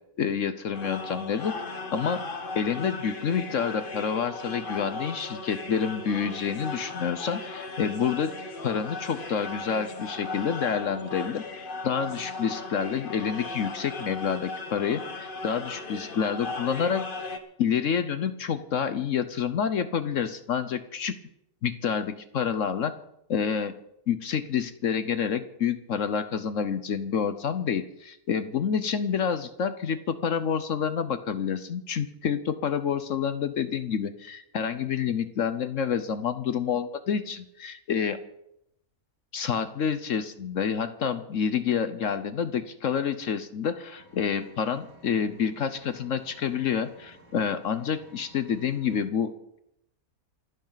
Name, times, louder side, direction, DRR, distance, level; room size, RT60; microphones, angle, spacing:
voice 1, 0.2-1.5 1.9-2.3 2.5-8.3 8.6-17.1 17.6-21.2 21.6-22.9 23.3-23.8 24.1-38.2 39.3-49.3, left 7 dB, 60° left, 11 dB, 1.1 m, -28 dB
sound 1, 0.7-17.4, left 3 dB, 35° left, 1.3 m, -37 dB
Engine, 43.9-49.0, right 1 dB, 85° right, 3.7 m, -55 dB
28.0 x 10.5 x 4.0 m, 0.80 s
omnidirectional pair, 1.6 m